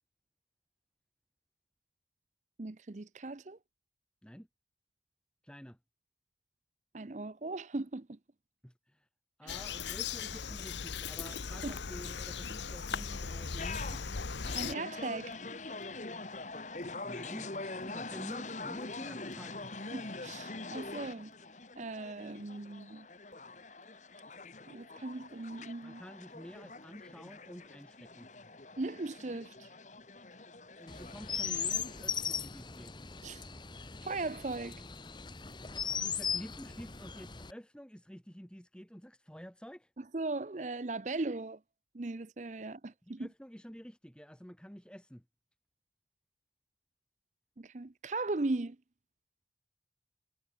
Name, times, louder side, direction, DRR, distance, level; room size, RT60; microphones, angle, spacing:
voice 1, 2.6-3.6 6.9-8.2 9.4-9.6 11.2-11.3 11.6-11.7 14.5-15.4 19.9-21.3 21.8-23.1 24.7-26.0 28.8-29.7 33.2-33.5 34.0-34.8 40.0-41.6 41.9-43.3 47.6-48.8, right 2 dB, 40° right, 0.6 m, -38 dB
voice 2, 5.4-5.8 8.6-9.1 9.4-14.1 17.0-19.7 25.8-28.3 30.8-33.0 35.9-39.9 43.0-45.2, equal, 5° left, 2.0 m, -49 dB
Bird vocalization bird call bird song, 9.5-14.7, left 6 dB, 85° left, 1.1 m, -38 dB
sound 1, 13.6-32.1, left 3 dB, 40° left, 1.8 m, -44 dB
Chirp tweet, 30.9-37.5, left 7 dB, 25° left, 1.1 m, -38 dB
head